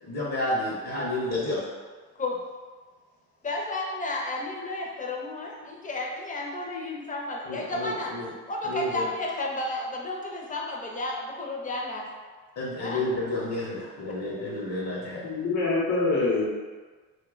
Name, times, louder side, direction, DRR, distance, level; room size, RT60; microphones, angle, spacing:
voice 1, 0.0-1.6 7.4-8.3 8.6-9.1 12.6-15.3, left 1 dB, 55° left, -6 dB, 0.9 m, -30 dB
voice 2, 3.4-8.1 8.5-12.1 12.8-13.0, left 2 dB, 25° left, -1 dB, 0.6 m, -32 dB
voice 3, 15.2-16.5, left 3 dB, 85° left, -4 dB, 0.9 m, -25 dB
2.7 x 2.2 x 3.8 m, 1.4 s
cardioid pair, 90°, 30 cm